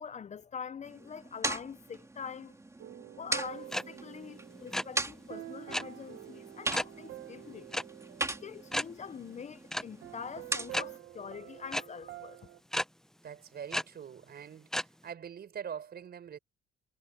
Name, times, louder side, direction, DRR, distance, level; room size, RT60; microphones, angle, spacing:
voice 1, 0.0-2.6 3.2-7.7 8.2-12.4, left 6 dB, 35° left, 0.7 m, -44 dB
sound 1, 0.8-11.0, right 2 dB, 15° right, 3.0 m, -40 dB
sound 2, 2.8-9.4 10.0-12.6, right 14 dB, 70° right, 1.6 m, -48 dB
sound 3, 3.7-3.8 4.1-4.3 4.5-4.8 5.7-5.8 6.7-6.9 7.7-7.8 8.2-8.3 8.7-8.8 9.7-9.8 10.7-10.8 11.7-11.8 12.7-12.8 13.7-13.8 14.7-14.8, equal, ahead, 0.8 m, -32 dB
voice 2, 13.2-16.4, right 8 dB, 50° right, 5.4 m, -44 dB
cardioid pair, 85°, 21 cm